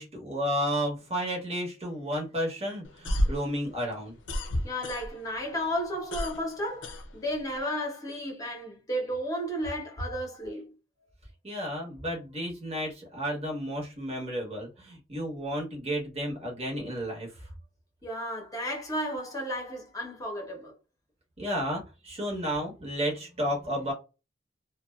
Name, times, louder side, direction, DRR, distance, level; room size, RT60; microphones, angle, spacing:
voice 1, 0.0-4.1 11.4-17.3 21.4-23.9, equal, 35° right, 1.1 m, -32 dB
sound 1, 2.8-5.4 5.7-7.6, equal, 65° left, 0.5 m, -31 dB
voice 2, 4.6-10.7 18.0-20.7, equal, 20° left, 0.9 m, -33 dB
2.5 x 2.1 x 2.3 m
head